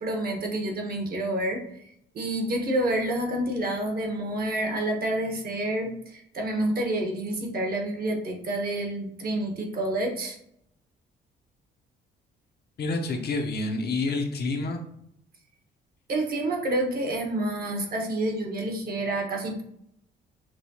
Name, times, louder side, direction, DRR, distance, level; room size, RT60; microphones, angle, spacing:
voice 1, 0.0-1.9 2.1-10.4 16.1-19.6, right 1 dB, 50° right, 2 dB, 1.1 m, -28 dB
voice 2, 12.8-14.8, left 3 dB, 55° left, 3 dB, 0.7 m, -28 dB
6.0 x 2.3 x 2.7 m, 0.71 s
cardioid pair, 90°, 20 cm